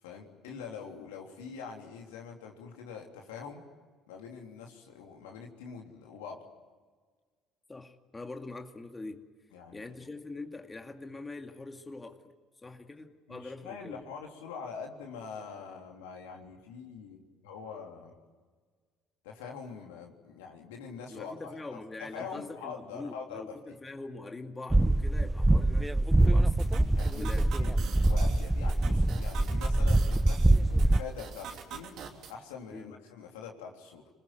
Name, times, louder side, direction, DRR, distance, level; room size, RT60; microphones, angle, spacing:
voice 1, 0.0-3.6 4.1-6.5 9.5-9.9 13.3-18.1 19.2-21.8 22.1-23.5 26.9-32.0 32.3-34.1, left 6 dB, 80° left, 1 dB, 3.4 m, -44 dB
voice 2, 7.7-9.2 9.7-12.2 12.6-14.0 21.1-26.6 27.2-27.5 32.7-33.0, left 3 dB, 20° left, 4 dB, 2.3 m, -43 dB
sound 1, 24.7-31.0, right 1 dB, 10° right, 0.9 m, -24 dB
sound 2, 26.6-32.3, right 7 dB, 60° right, 2.9 m, -45 dB
27.0 x 20.5 x 9.3 m, 1.5 s
hypercardioid pair, 60°, 0 cm